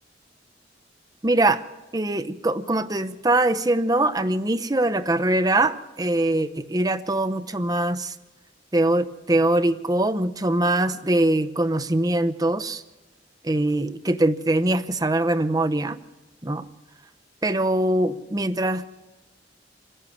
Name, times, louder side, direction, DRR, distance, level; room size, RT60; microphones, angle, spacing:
voice 1, 1.2-1.6 1.9-8.1 8.7-12.8 13.4-16.0 16.4-16.7 17.4-18.9, right 1 dB, 20° right, 12 dB, 0.8 m, -22 dB
27.5 x 11.0 x 9.3 m, 1.1 s
head